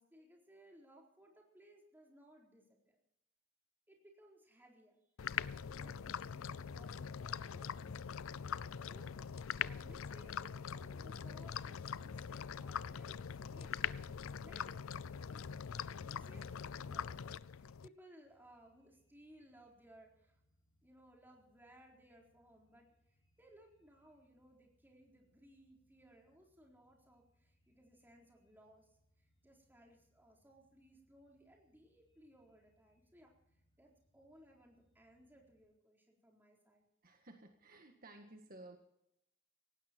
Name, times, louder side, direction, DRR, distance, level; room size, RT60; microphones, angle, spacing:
voice 1, 0.0-3.0 3.9-5.1 5.5-8.2 8.5-9.1 9.6-13.2 13.5-15.0 15.3-15.5 15.8-20.4 20.8-33.3 33.8-36.9, right 1 dB, 10° right, 0 dB, 4.1 m, -63 dB
sound 1, 5.2-17.9, left 7 dB, 80° left, 0.5 m, -43 dB
sound 2, 18.2-35.6, equal, 25° left, 3.9 m, -78 dB
voice 2, 37.0-38.8, right 2 dB, 45° right, 4 dB, 1.7 m, -56 dB
18.5 x 16.0 x 4.5 m, 0.79 s
head